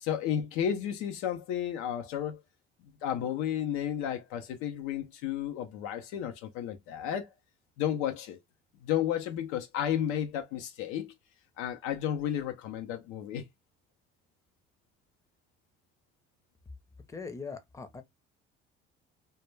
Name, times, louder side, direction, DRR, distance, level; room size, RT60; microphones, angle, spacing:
voice 1, 0.0-2.4 2.8-7.3 7.8-8.4 8.8-11.1 11.6-13.4, left 10 dB, 90° left, 0.5 m, -32 dB
voice 2, 17.1-18.0, left 4 dB, 15° left, 0.5 m, -41 dB
2.1 x 2.1 x 3.1 m
cardioid pair, 120°, 21 cm